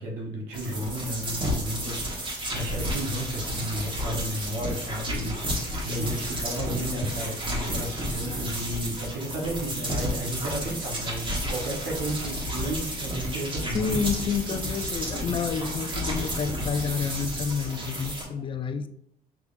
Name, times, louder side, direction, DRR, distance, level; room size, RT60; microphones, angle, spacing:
voice 1, 0.0-13.9, right 1 dB, 80° right, 1.3 m, -33 dB
sound 1, 0.5-18.2, equal, 30° right, 1.4 m, -31 dB
voice 2, 13.7-18.9, left 6 dB, 30° left, 0.4 m, -29 dB
6.0 x 3.4 x 2.6 m
cardioid pair, 110°, 17 cm